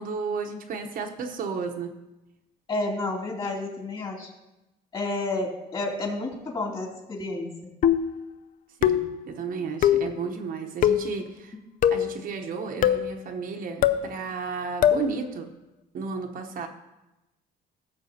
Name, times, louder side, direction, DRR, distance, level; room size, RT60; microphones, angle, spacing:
voice 1, 0.0-2.0 8.8-11.5 11.9-15.5 15.9-16.7, right 5 dB, 60° right, 4 dB, 1.0 m, -33 dB
voice 2, 2.7-4.3 4.9-7.5, left 2 dB, 30° left, -1 dB, 2.7 m, -30 dB
sound 1, 7.8-8.2 8.8-9.2 9.8-10.1 10.8-11.1 11.8-12.2 12.8-13.1 13.8-14.1 14.8-15.1, left 10 dB, 55° left, 0.5 m, -21 dB
16.0 x 6.9 x 2.8 m, 0.98 s
cardioid pair, 110°, 17 cm